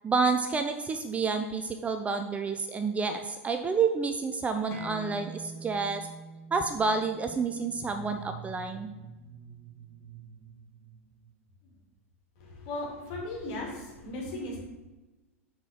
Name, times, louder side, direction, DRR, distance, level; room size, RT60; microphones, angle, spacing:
voice 1, 0.0-6.0 6.5-8.9, right 4 dB, 15° right, 7 dB, 0.5 m, -29 dB
sound 1, 4.7-9.9, right 3 dB, 25° left, 2.2 m, -46 dB
sound 2, 7.6-11.7, right 7 dB, 60° right, 0.9 m, -48 dB
voice 2, 12.4-14.6, left 2 dB, 50° left, -2 dB, 2.7 m, -37 dB
6.3 x 4.8 x 5.6 m, 1.1 s
figure-of-eight pair, 85°, 8 cm